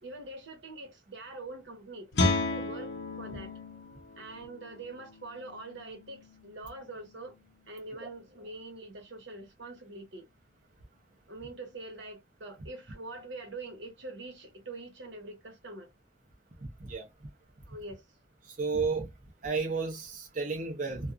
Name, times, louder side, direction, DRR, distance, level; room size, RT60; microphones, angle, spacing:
voice 1, 0.0-3.5 4.2-7.3 7.7-10.3 11.3-15.9 17.7-18.0, right 2 dB, 85° right, 1.2 m, -44 dB
Guitar, 2.1-7.7, left 2 dB, 80° left, 0.8 m, -34 dB
voice 2, 16.6-17.1 18.4-19.1 19.4-21.1, right 4 dB, 45° right, 0.6 m, -32 dB
2.4 x 2.4 x 2.4 m
head